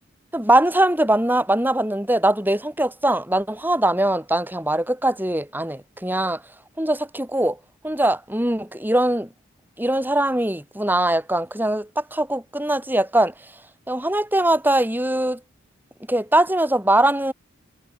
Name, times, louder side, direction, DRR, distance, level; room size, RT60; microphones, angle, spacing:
voice 1, 0.3-6.4 6.8-7.6 7.8-9.3 9.8-13.3 13.9-15.4 16.1-17.3, right 1 dB, 10° right, 4.3 m, -21 dB
head